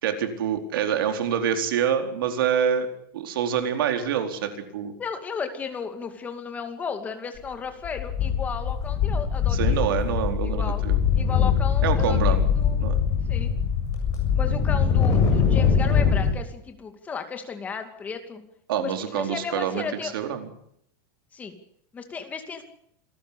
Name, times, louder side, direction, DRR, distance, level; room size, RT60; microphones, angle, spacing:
voice 1, 0.0-2.9 3.1-4.9 9.5-11.0 11.8-12.4 12.8-13.0 18.7-20.5, right 8 dB, 80° right, 6 dB, 4.4 m, -26 dB
voice 2, 5.0-10.0 10.4-10.8 11.2-12.8 13.3-13.5 14.3-18.4 18.8-20.1 21.3-21.6 21.9-22.6, left 6 dB, 15° left, 7 dB, 2.4 m, -34 dB
sound 1, 7.4-7.5 7.8-16.3, left 7 dB, 30° left, 7.2 m, -22 dB
27.0 x 13.5 x 8.4 m, 0.71 s
supercardioid pair, 175°, 12 cm